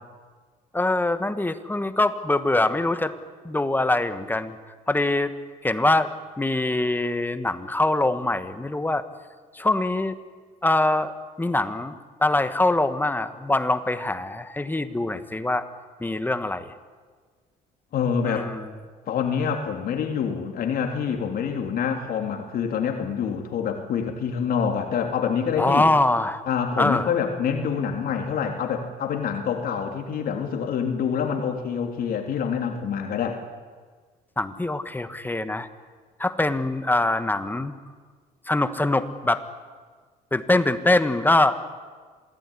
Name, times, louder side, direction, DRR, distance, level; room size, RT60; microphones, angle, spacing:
voice 1, 0.7-3.1 3.4-4.6 4.9-5.3 5.6-6.1 6.4-9.0 9.5-10.2 10.6-11.1 11.4-15.6 16.0-16.7 18.2-18.7 25.6-26.4 26.8-27.1 34.4-35.7 36.2-37.7 38.5-39.4 40.3-41.6, left 2 dB, 10° left, 11 dB, 1.5 m, -23 dB
voice 2, 17.9-18.5 19.1-25.8 26.5-33.4, left 7 dB, 60° left, 3 dB, 3.0 m, -26 dB
27.0 x 19.5 x 10.0 m, 1.5 s
cardioid pair, 110°, 17 cm